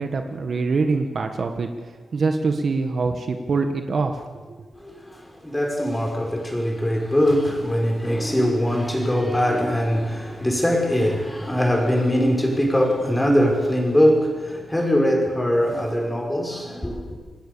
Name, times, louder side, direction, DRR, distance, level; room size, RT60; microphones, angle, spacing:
voice 1, 0.0-1.7 2.1-4.2, right 4 dB, 50° right, 1.6 m, -24 dB
voice 2, 4.8-17.1, equal, 10° left, 5.7 m, -22 dB
27.5 x 19.5 x 7.0 m
cardioid pair, 105°, 0 cm